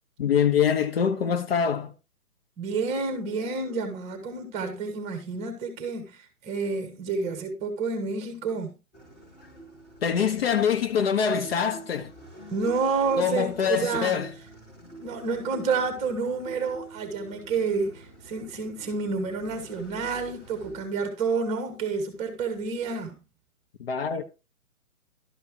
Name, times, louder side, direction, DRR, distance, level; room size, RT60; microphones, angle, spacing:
voice 1, 0.2-1.9 10.0-12.1 13.2-14.3 23.8-24.2, left 7 dB, 40° left, 1.3 m, -24 dB
voice 2, 2.6-8.8 12.5-14.2 15.0-23.2, right 4 dB, 15° right, 1.5 m, -29 dB
sound 1, 8.9-20.9, right 2 dB, 20° left, 4.5 m, -47 dB
12.0 x 5.3 x 4.6 m
figure-of-eight pair, 145°, 44 cm